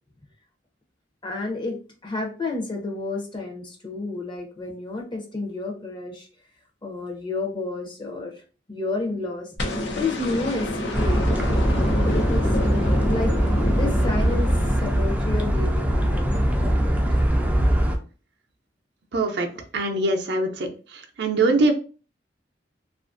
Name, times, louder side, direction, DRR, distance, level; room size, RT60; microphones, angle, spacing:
voice 1, 1.2-6.3 6.8-8.3 8.7-9.5 10.0-11.3 11.7-12.5 13.0-13.3 13.6-14.5 14.8-17.0 19.5-19.6, left 3 dB, 25° left, 2 dB, 0.6 m, -31 dB
sound 1, 9.6-15.8 17.3-17.4, left 1 dB, 80° left, 0.6 m, -28 dB
sound 2, 10.9-18.0, equal, 10° right, 0.4 m, -22 dB
voice 2, 19.1-19.5 19.7-20.7 21.2-21.7, right 2 dB, 65° right, 3 dB, 0.5 m, -22 dB
2.7 x 2.4 x 2.5 m, 0.36 s
head